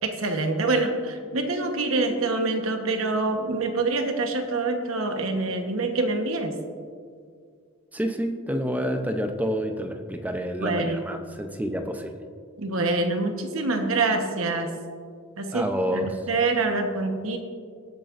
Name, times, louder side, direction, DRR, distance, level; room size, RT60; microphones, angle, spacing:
voice 1, 0.0-6.5 10.6-11.0 12.6-14.7 15.4-17.4, right 3 dB, 80° right, 5 dB, 1.1 m, -26 dB
voice 2, 7.9-12.2 15.5-16.2, equal, 10° right, 6 dB, 0.6 m, -28 dB
18.0 x 8.3 x 2.6 m, 2.1 s
head